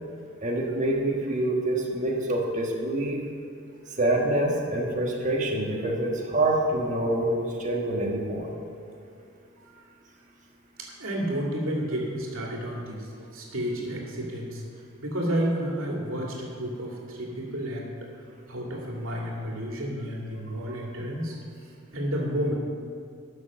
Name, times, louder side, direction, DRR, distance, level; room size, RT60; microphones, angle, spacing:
voice 1, 0.4-3.2 4.0-8.5, right 1 dB, 40° right, -1 dB, 1.5 m, -26 dB
voice 2, 10.8-14.6 15.0-17.8 18.5-21.4 21.9-22.5, equal, 90° right, -2 dB, 2.4 m, -31 dB
12.5 x 6.6 x 6.3 m, 2.4 s
head